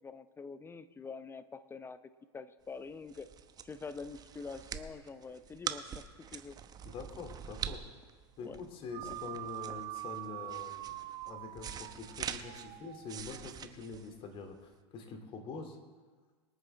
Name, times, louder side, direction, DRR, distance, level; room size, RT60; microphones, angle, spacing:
voice 1, 0.0-2.0 2.3-3.3 3.6-6.6 8.4-8.6 9.0-9.1, left 4 dB, 15° left, 13 dB, 0.8 m, -46 dB
sound 1, 2.8-14.7, right 8 dB, 25° right, 0.9 m, -44 dB
voice 2, 6.8-7.8 8.4-11.0 11.2-15.8, left 4 dB, 40° left, 5 dB, 2.4 m, -45 dB
sound 2, 8.9-13.4, right 18 dB, 45° right, 0.5 m, -44 dB
25.0 x 9.1 x 3.4 m, 1.4 s
hypercardioid pair, 90°, 14 cm